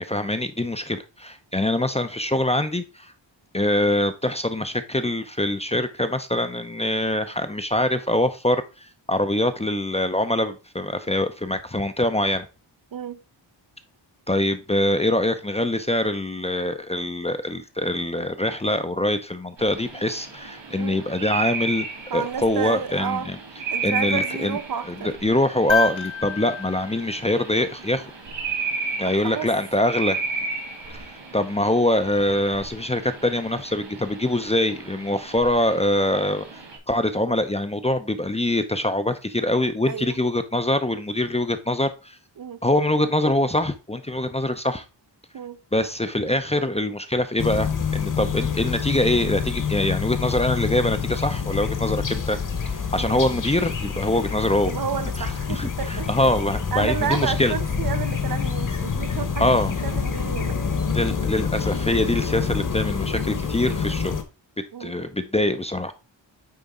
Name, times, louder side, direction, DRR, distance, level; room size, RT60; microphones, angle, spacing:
voice 1, 0.0-3.1 3.5-12.5 14.3-21.9 22.1-23.4 23.8-24.6 24.9-28.0 29.0-30.2 30.9-36.4 36.9-42.2 42.6-44.8 45.7-52.4 52.9-54.7 55.2-57.6 59.4-59.7 60.9-64.2 64.8-65.9, left 1 dB, 15° left, 0.5 m, -24 dB
sound 1, 19.6-36.8, right 4 dB, 65° right, 2.3 m, -34 dB
voice 2, 22.1-23.3 23.7-25.1 29.0-29.5 39.9-40.2 42.4-42.6 45.3-45.6 53.0-53.2 54.6-56.2 56.7-60.6 64.7-65.0, right 8 dB, 50° right, 0.5 m, -31 dB
sound 2, 25.7-28.0 30.0-30.1, left 4 dB, 75° left, 1.4 m, -29 dB
sound 3, 47.4-64.2, left 6 dB, 40° left, 1.1 m, -27 dB
9.4 x 4.0 x 3.5 m
wide cardioid pair, 175°, 46 cm